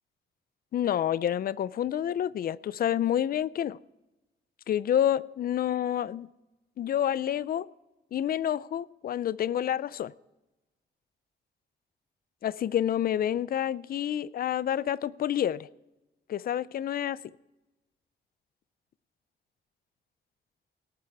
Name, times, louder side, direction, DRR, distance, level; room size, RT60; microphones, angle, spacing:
voice 1, 0.7-3.8 4.7-6.3 6.8-7.7 8.1-10.1 12.4-15.7 16.3-17.2, left 10 dB, 55° left, 20 dB, 0.4 m, -28 dB
18.0 x 8.6 x 4.7 m, 1.0 s
cardioid pair, 130°, 19 cm